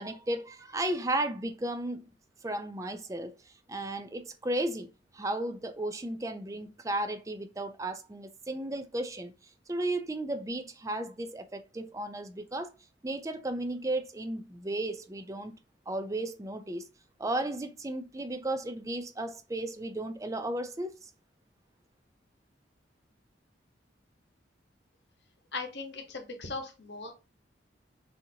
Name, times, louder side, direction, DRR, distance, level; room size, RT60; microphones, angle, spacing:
voice 1, 0.0-2.1 2.4-3.3 3.7-9.3 9.7-12.7 13.0-15.5 15.9-16.9 17.2-21.1, right 1 dB, 15° right, 0.4 m, -34 dB
voice 2, 25.5-27.1, left 3 dB, 65° left, 1.2 m, -38 dB
6.3 x 2.8 x 2.8 m
head